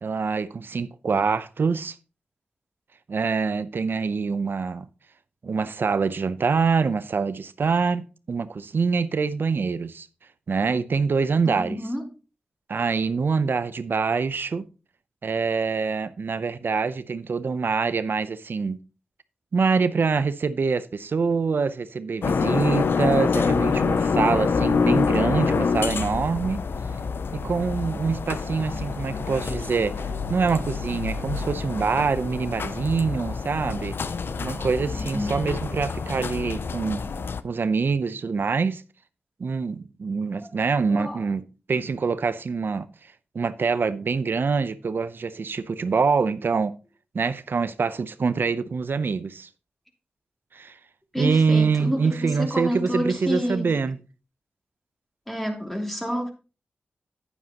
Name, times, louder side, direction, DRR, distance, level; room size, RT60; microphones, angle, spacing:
voice 1, 0.0-1.9 3.1-4.9 5.4-10.1 10.5-11.8 12.7-14.6 15.2-18.8 19.5-26.6 27.3-29.9 30.3-33.9 34.4-37.0 37.4-38.8 39.4-41.4 41.7-42.9 43.3-46.7 47.1-49.5 50.5-50.7 51.2-54.0, right 5 dB, 65° right, 0.7 m, -25 dB
voice 2, 11.5-12.1 34.9-35.4 40.9-41.2 51.1-53.7 55.3-56.3, equal, 5° left, 2.8 m, -29 dB
sound 1, 22.2-37.4, left 5 dB, 75° left, 0.5 m, -26 dB
10.0 x 9.4 x 2.9 m
cardioid pair, 55°, 4 cm